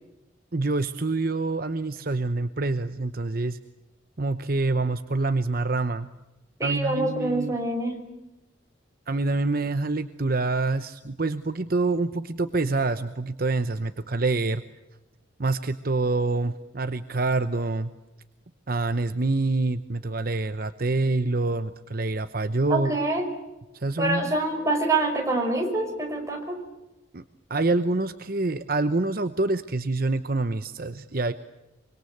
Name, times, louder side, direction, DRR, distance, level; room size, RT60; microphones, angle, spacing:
voice 1, 0.5-3.6 4.2-6.1 6.6-7.6 9.1-14.6 15.4-17.9 18.7-23.0 23.7-24.3 27.1-27.2 27.5-31.3, right 3 dB, 50° right, 10 dB, 0.9 m, -26 dB
voice 2, 6.6-8.0 22.7-23.2 24.0-26.6, right 2 dB, 15° right, 2 dB, 5.4 m, -26 dB
25.0 x 24.5 x 8.0 m, 1.0 s
head